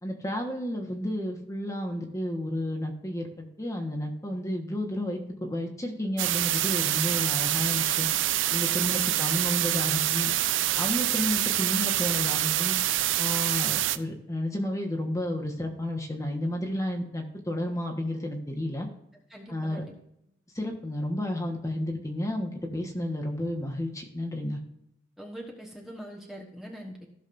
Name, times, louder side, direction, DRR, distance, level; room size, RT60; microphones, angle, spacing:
voice 1, 0.0-8.1 8.5-10.3 10.8-12.8 13.2-18.9 19.5-19.8 20.5-24.6, left 1 dB, 15° left, 1 dB, 1.3 m, -31 dB
sound 1, 6.2-14.0, right 13 dB, 75° right, 0.5 m, -26 dB
voice 2, 19.3-19.9 25.2-27.1, equal, ahead, -2 dB, 1.2 m, -43 dB
15.5 x 6.4 x 2.6 m, 0.80 s
head